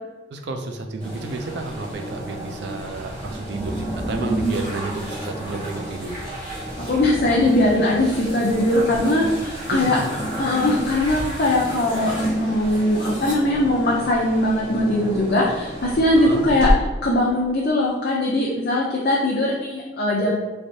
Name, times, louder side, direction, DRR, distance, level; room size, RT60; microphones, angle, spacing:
voice 1, 0.3-6.2 9.2-9.3 9.7-10.1 16.1-16.4, right 3 dB, 60° right, 4 dB, 0.4 m, -31 dB
sound 1, 1.0-16.7, right 1 dB, 45° right, 1.4 m, -30 dB
voice 2, 6.9-10.0 10.4-16.7 17.0-20.4, left 1 dB, 50° left, -4 dB, 0.5 m, -20 dB
3.3 x 3.3 x 2.7 m, 1.2 s
head